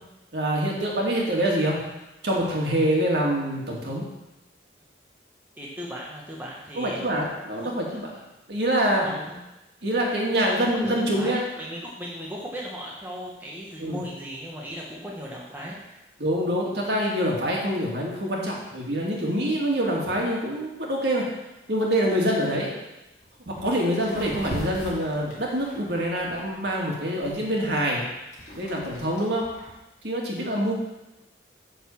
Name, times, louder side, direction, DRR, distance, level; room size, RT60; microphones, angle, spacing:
voice 1, 0.3-1.8 2.2-4.0 6.8-8.1 8.5-9.1 9.8-11.4 13.8-14.0 16.2-21.3 21.7-22.7 23.5-28.0 28.6-29.5 30.0-30.7, equal, 60° right, -2 dB, 2.1 m, -25 dB
voice 2, 5.6-7.1 7.6-7.7 9.0-9.4 10.5-16.0, equal, 10° right, -4 dB, 1.2 m, -37 dB
sound 1, 23.1-23.2 23.5-23.7 24.0-26.7 27.2-29.7, equal, 40° left, 2.5 m, -39 dB
9.1 x 4.2 x 7.1 m, 0.97 s
head